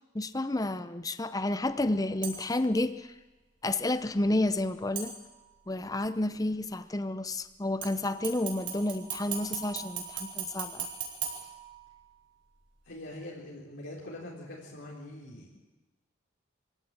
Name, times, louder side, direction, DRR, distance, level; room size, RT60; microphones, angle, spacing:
voice 1, 0.1-3.1 3.6-5.1 5.7-10.9, left 2 dB, 20° left, 12 dB, 0.7 m, -30 dB
sound 1, 2.2-2.7 4.9-5.7 7.8-12.2 12.6-12.7, right 7 dB, 60° right, 5.3 m, -39 dB
voice 2, 12.9-15.6, left 1 dB, 65° left, -4 dB, 4.1 m, -43 dB
25.0 x 16.5 x 8.9 m, 1.1 s
head